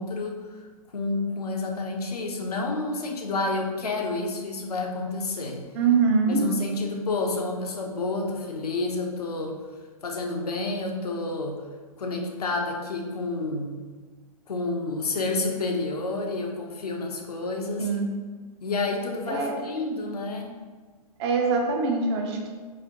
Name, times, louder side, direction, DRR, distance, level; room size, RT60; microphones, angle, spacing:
voice 1, 0.0-5.6 6.3-9.6 10.0-11.6 12.0-13.8 14.5-17.9 18.6-20.5, left 3 dB, 85° left, 2 dB, 0.7 m, -29 dB
voice 2, 5.8-6.4 17.8-18.1 19.3-19.5 21.2-22.5, right 4 dB, 45° right, 2 dB, 0.7 m, -23 dB
4.0 x 2.5 x 2.9 m, 1.4 s
hypercardioid pair, 130°, 19 cm